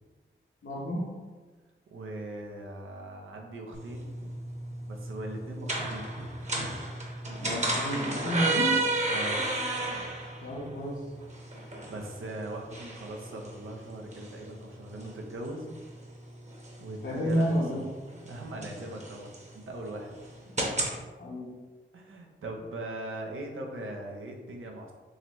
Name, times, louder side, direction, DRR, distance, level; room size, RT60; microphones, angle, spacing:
voice 1, 0.6-1.1 7.4-8.8 10.4-11.0 17.0-17.8 21.2-21.5, equal, 70° left, -7 dB, 0.9 m, -30 dB
voice 2, 1.9-4.3 4.9-6.1 9.1-9.4 11.9-15.7 16.8-17.8 18.2-20.1 21.9-24.9, right 1 dB, 90° right, 1 dB, 0.6 m, -40 dB
sound 1, 3.7-21.0, right 2 dB, 35° right, 0.9 m, -34 dB
3.8 x 3.1 x 3.0 m, 1.4 s
cardioid pair, 55°, 20 cm